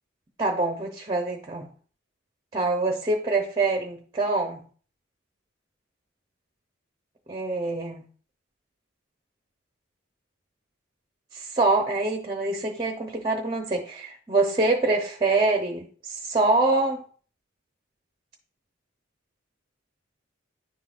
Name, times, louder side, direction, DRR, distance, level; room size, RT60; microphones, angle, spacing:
voice 1, 0.4-1.7 2.5-4.6 7.3-8.0 11.3-17.0, right 2 dB, 20° right, 3 dB, 0.7 m, -25 dB
10.5 x 3.8 x 2.4 m, 0.43 s
head